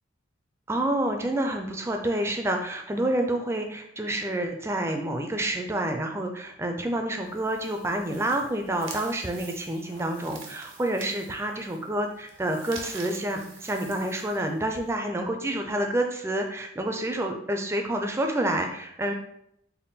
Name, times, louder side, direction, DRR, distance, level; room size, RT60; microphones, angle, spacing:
voice 1, 0.7-19.1, right 1 dB, 15° right, 4 dB, 0.3 m, -28 dB
sound 1, 7.2-14.9, right 4 dB, 90° right, 0.7 m, -46 dB
3.6 x 2.2 x 4.0 m, 0.74 s
head